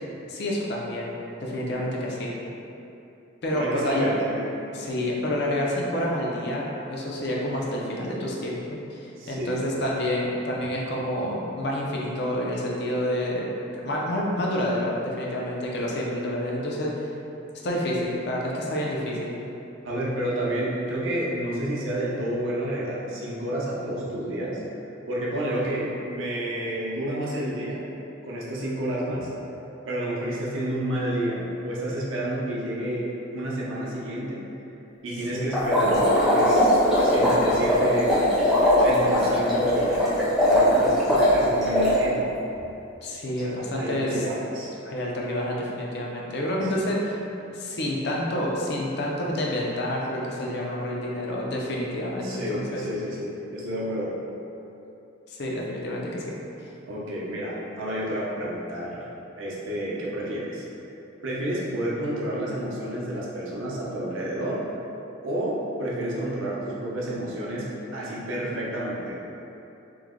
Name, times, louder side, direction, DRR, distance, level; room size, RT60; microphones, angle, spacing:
voice 1, 0.3-1.1 1.4-2.3 3.4-4.2 4.7-17.0 17.6-19.3 35.3-35.7 43.0-44.2 44.9-47.2 47.5-52.8 55.3-56.7, left 1 dB, 55° left, -3 dB, 0.4 m, -28 dB
voice 2, 3.5-4.5 9.2-9.6 19.8-24.6 25.1-27.8 28.2-29.3 29.9-34.4 35.0-38.3 38.8-40.1 40.4-42.3 43.4-44.7 46.7-46.9 52.2-54.2 56.9-59.0 59.4-60.7 61.2-64.6 65.2-69.1, right 1 dB, 75° right, -5 dB, 0.6 m, -30 dB
sound 1, 35.5-42.0, equal, ahead, 0.5 m, -20 dB
3.1 x 2.1 x 3.6 m, 2.9 s
head